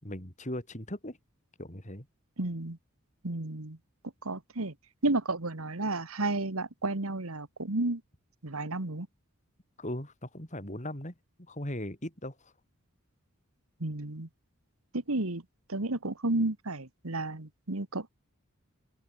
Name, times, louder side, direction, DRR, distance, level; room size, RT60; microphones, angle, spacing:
voice 1, 0.0-1.2 1.6-2.1 9.8-11.1 11.5-12.5, left 1 dB, 35° left, 6.2 m, -38 dB
voice 2, 2.4-2.8 3.2-3.8 4.2-4.7 5.0-8.0 8.4-9.1 13.8-14.3 14.9-15.4 15.7-18.1, right 2 dB, 80° right, 2.0 m, -32 dB
open air
head